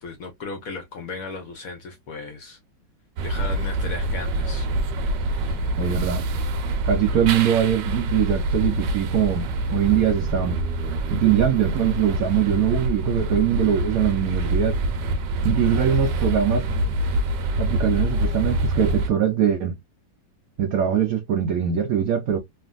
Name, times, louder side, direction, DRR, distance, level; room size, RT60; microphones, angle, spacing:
voice 1, 0.0-2.6 3.2-4.7 5.3-5.7, left 3 dB, 65° left, 0.9 m, -36 dB
sound 1, 3.2-19.1, right 1 dB, 70° right, 1.1 m, -25 dB
voice 2, 5.8-6.3 6.9-10.6 11.1-14.8 15.4-16.7 17.6-19.7 20.6-22.4, right 9 dB, 90° right, 0.7 m, -22 dB
3.3 x 2.4 x 2.2 m
omnidirectional pair, 2.1 m